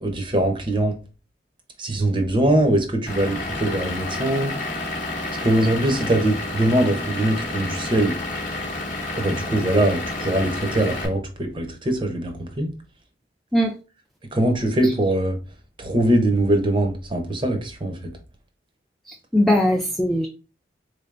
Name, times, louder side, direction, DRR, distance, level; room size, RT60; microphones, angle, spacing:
voice 1, 0.0-0.9 1.8-4.6 5.4-8.2 9.1-12.7 14.3-15.4 15.8-18.1, right 1 dB, 25° right, 5 dB, 0.7 m, -22 dB
Vehicle / Engine, 3.1-11.1, left 2 dB, 45° left, 0.8 m, -30 dB
voice 2, 19.1-20.3, left 1 dB, ahead, -1 dB, 0.3 m, -20 dB
3.8 x 3.3 x 2.5 m, 0.33 s
head